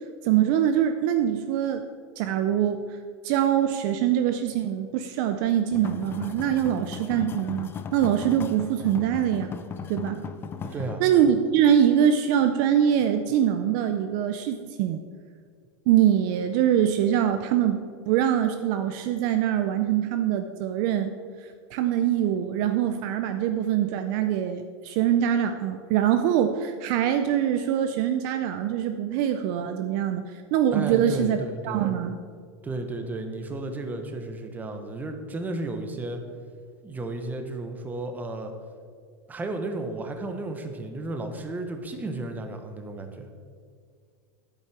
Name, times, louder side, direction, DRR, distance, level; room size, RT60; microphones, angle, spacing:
voice 1, 0.2-1.8 2.2-3.0 3.2-9.5 9.9-10.2 11.0-15.0 15.9-21.1 21.4-31.4 31.6-32.2, right 10 dB, 45° right, 8 dB, 0.5 m, -24 dB
sound 1, 5.7-10.9, left 6 dB, 15° left, 0.4 m, -37 dB
voice 2, 10.7-11.0 30.7-31.9 32.6-36.2 36.8-38.5 39.3-43.3, right 2 dB, 10° right, 5 dB, 0.9 m, -33 dB
10.5 x 8.5 x 4.7 m, 2.1 s
supercardioid pair, 155°, 15 cm